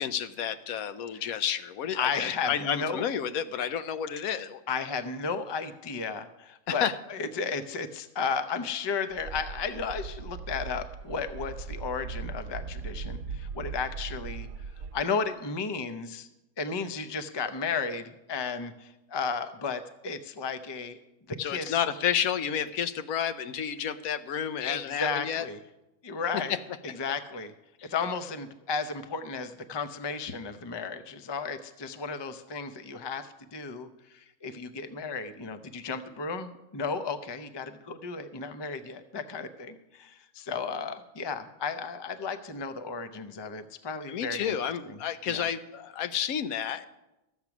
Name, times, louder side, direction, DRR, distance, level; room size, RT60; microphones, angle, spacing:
voice 1, 0.0-4.6 6.7-6.9 21.4-25.5 27.8-27.9 44.1-46.9, left 9 dB, 85° left, 12 dB, 1.1 m, -30 dB
voice 2, 1.9-3.0 4.7-14.5 14.9-16.3 16.6-21.0 21.3-21.8 24.6-25.6 26.0-26.6 26.8-27.5 27.9-44.6 44.9-45.0 45.3-45.5, left 5 dB, 35° left, 9 dB, 0.4 m, -34 dB
sound 1, 9.1-15.0, right 5 dB, 80° right, 1.1 m, -39 dB
13.5 x 8.1 x 6.0 m, 0.97 s
omnidirectional pair, 1.5 m